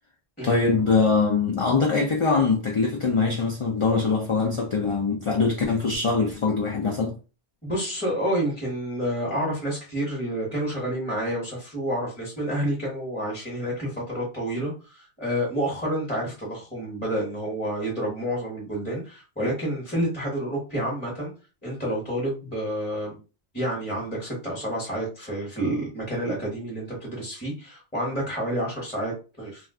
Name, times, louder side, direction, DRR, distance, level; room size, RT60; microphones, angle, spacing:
voice 1, 0.4-7.2, left 4 dB, 55° left, 0.3 m, -23 dB
voice 2, 7.6-21.3 21.6-23.2 23.5-29.7, right 1 dB, 10° left, 0.9 m, -29 dB
2.3 x 2.3 x 3.5 m
omnidirectional pair, 1.1 m